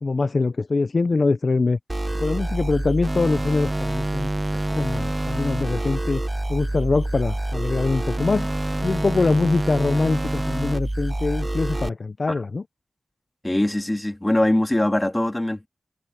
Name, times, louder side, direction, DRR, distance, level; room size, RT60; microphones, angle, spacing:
voice 1, 0.0-1.8 2.2-4.3 4.8-6.2 6.5-8.5 8.8-12.6, left 3 dB, 55° left, 0.6 m, -23 dB
sound 1, 1.9-11.9, right 1 dB, 15° right, 0.7 m, -26 dB
voice 2, 13.4-15.7, left 1 dB, 15° left, 2.4 m, -22 dB
wide cardioid pair, 65°, 0 cm